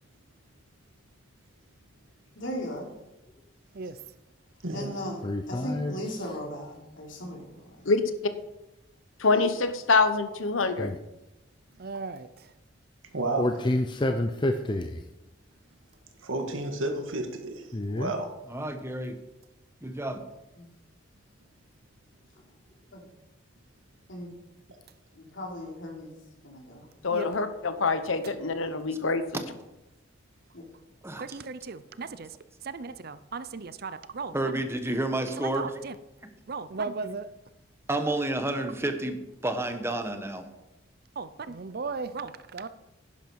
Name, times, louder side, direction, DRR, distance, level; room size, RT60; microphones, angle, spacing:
voice 1, 2.3-2.9 4.7-5.2 5.5-7.5 7.8-7.9 13.5-13.6 20.5-20.7 22.9-23.0 24.1-24.3 25.1-26.1 26.4-26.9 30.5-30.7, equal, 70° left, -1 dB, 3.5 m, -37 dB
voice 2, 5.2-6.0 10.8-11.0 13.4-15.0 17.7-18.1, left 1 dB, 25° left, 6 dB, 0.6 m, -28 dB
voice 3, 9.2-10.9 27.0-29.2, left 3 dB, 90° left, 10 dB, 1.1 m, -25 dB
voice 4, 11.8-12.5 27.1-27.3 28.2-28.3 31.2-34.6 35.4-36.0 36.5-37.3 41.2-42.7, right 4 dB, 50° right, 14 dB, 0.6 m, -37 dB
voice 5, 13.1-13.5 16.2-17.7 17.9-18.3, right 2 dB, 90° right, 4 dB, 2.0 m, -31 dB
voice 6, 18.5-19.2 19.8-20.2 31.0-31.2 34.3-35.7 37.9-39.2 39.4-40.4, right 1 dB, 15° right, 7 dB, 1.1 m, -30 dB
11.0 x 10.5 x 4.7 m, 0.97 s
head